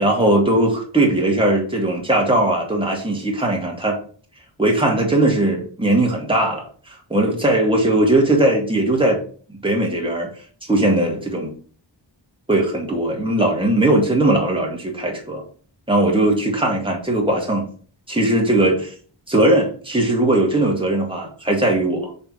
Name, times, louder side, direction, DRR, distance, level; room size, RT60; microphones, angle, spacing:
voice 1, 0.0-4.0 4.6-9.2 9.6-10.3 10.6-11.5 12.5-15.4 15.9-17.7 18.1-18.9 19.3-22.1, right 1 dB, 10° right, -1 dB, 2.1 m, -19 dB
5.9 x 4.2 x 4.7 m, 0.43 s
wide cardioid pair, 70°, 48 cm